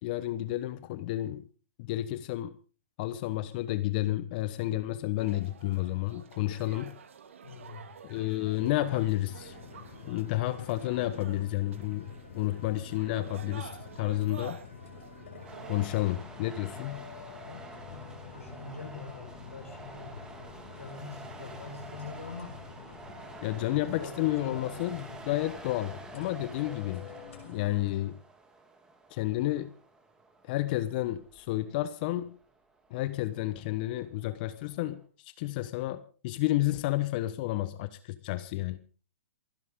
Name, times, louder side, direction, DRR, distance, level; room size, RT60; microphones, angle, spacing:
voice 1, 0.0-1.5 1.8-2.5 3.0-6.9 8.0-9.6 10.1-12.1 12.3-13.7 14.0-14.6 15.7-17.0 23.4-27.1 27.5-28.2 29.1-29.7 30.5-32.3 32.9-38.8, left 16 dB, 40° left, 1.1 m, -31 dB
sound 1, 5.2-15.9, right 7 dB, 70° right, 2.1 m, -49 dB
voice 2, 7.4-7.9 17.5-17.6 17.9-20.2 20.8-22.6 23.5-25.3, left 4 dB, 90° left, 5.7 m, -44 dB
sound 2, 8.5-28.0, left 6 dB, 65° left, 6.2 m, -48 dB
sound 3, 15.4-35.1, right 3 dB, 10° right, 2.7 m, -49 dB
28.0 x 11.0 x 3.7 m
hypercardioid pair, 130°, 7 cm